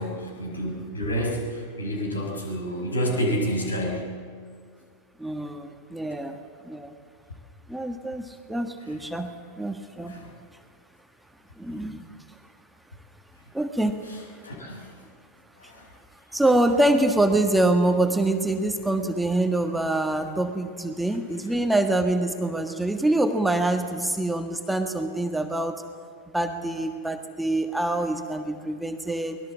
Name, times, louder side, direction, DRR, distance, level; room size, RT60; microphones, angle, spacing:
voice 1, 0.0-4.2 10.1-10.3 14.4-14.9 15.6-15.9, equal, 75° left, 1 dB, 5.5 m, -29 dB
voice 2, 5.2-6.4 6.6-6.9 7.7-10.2 11.6-12.1 13.5-13.9 14.3-14.4 15.6-15.7 16.3-25.8 26.3-29.4, right 1 dB, 5° right, 6 dB, 1.5 m, -25 dB
24.5 x 19.5 x 7.4 m, 2.1 s
figure-of-eight pair, 90°, 0 cm